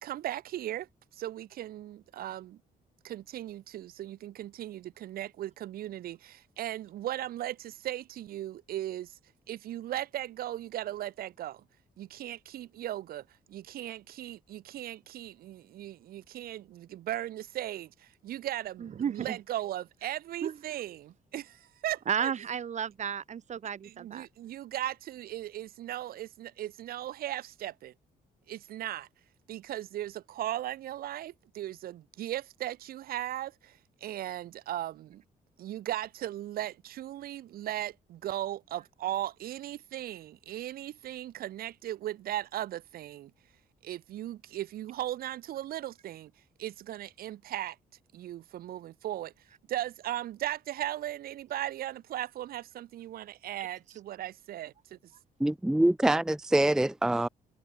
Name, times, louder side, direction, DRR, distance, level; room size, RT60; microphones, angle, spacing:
voice 1, 0.0-2.6 3.0-9.2 9.5-11.6 12.0-22.3 23.8-27.9 28.5-29.1 29.5-35.2 35.6-43.3 43.8-46.3 46.6-47.8 48.1-49.3 49.7-55.1, right 13 dB, 80° right, 3.8 m, -37 dB
voice 2, 18.8-19.4 20.4-20.6 22.1-24.3, right 8 dB, 50° right, 3.1 m, -33 dB
voice 3, 55.4-57.3, right 1 dB, 5° right, 0.5 m, -25 dB
cardioid pair, 105°, 15 cm